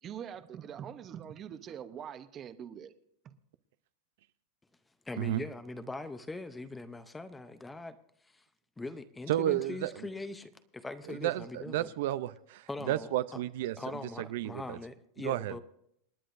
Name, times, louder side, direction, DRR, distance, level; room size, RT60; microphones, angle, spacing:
voice 1, 0.0-2.9 3.2-3.3, right 9 dB, 25° right, 0.8 m, -43 dB
voice 2, 5.1-8.0 8.2-8.4 8.8-11.9 12.7-13.4 13.8-15.6, left 2 dB, 5° left, 0.6 m, -41 dB
voice 3, 9.3-9.9 11.1-13.8 14.3-14.8 15.2-15.6, right 13 dB, 60° right, 0.5 m, -32 dB
27.5 x 9.9 x 2.6 m
supercardioid pair, 160°, 0 cm